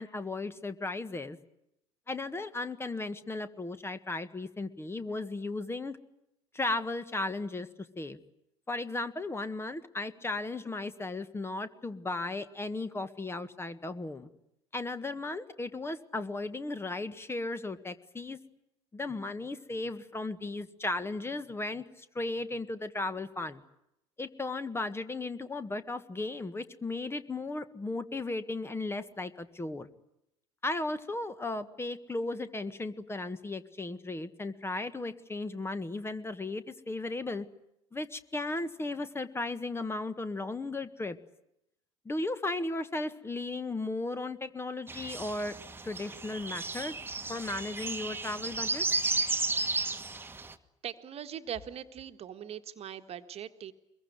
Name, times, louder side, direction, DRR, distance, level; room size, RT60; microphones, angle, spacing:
voice 1, 0.0-1.4 2.1-6.0 6.5-8.2 8.7-14.3 14.7-18.4 18.9-23.6 24.2-29.9 30.6-37.5 37.9-41.2 42.0-45.5 45.8-46.9 47.3-48.9, left 2 dB, 15° left, 12 dB, 1.7 m, -35 dB
sound 1, 44.9-50.5, right 3 dB, 15° right, 1.7 m, -33 dB
voice 2, 50.8-53.7, right 9 dB, 40° right, 9 dB, 1.6 m, -41 dB
24.5 x 22.0 x 9.7 m, 0.82 s
figure-of-eight pair, 65°, 16 cm